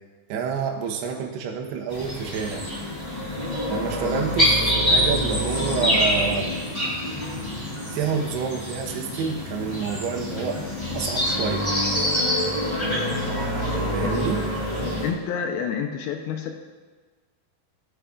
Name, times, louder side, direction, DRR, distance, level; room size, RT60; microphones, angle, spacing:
voice 1, 0.3-2.7 3.7-6.6 7.9-10.6 10.9-11.7 13.9-14.4, right 6 dB, 75° right, 1 dB, 2.9 m, -28 dB
sound 1, 1.9-15.1, equal, 10° left, 2.0 m, -25 dB
voice 2, 14.8-16.5, left 7 dB, 80° left, 4 dB, 2.2 m, -29 dB
16.0 x 8.9 x 2.4 m, 1.4 s
omnidirectional pair, 5.0 m